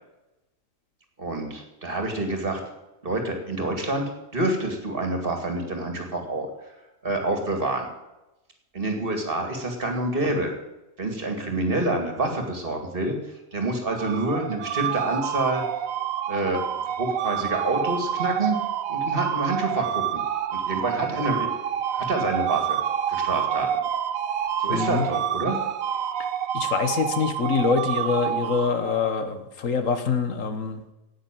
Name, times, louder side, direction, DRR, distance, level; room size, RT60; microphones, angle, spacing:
voice 1, 1.2-2.6 3.0-4.0 4.3-6.7 7.0-7.9 8.7-10.5 11.0-13.2 13.5-15.6 16.3-16.6 17.0-18.6 18.9-20.2 20.5-21.5 21.9-22.8 23.1-23.7 24.6-25.6, right 2 dB, 40° right, 4 dB, 2.5 m, -27 dB
sound 1, 13.9-29.1, right 9 dB, 85° right, 1.2 m, -28 dB
voice 2, 24.7-25.1 26.5-30.8, left 5 dB, 75° left, 9 dB, 1.6 m, -25 dB
9.9 x 8.8 x 9.1 m, 0.96 s
omnidirectional pair, 1.4 m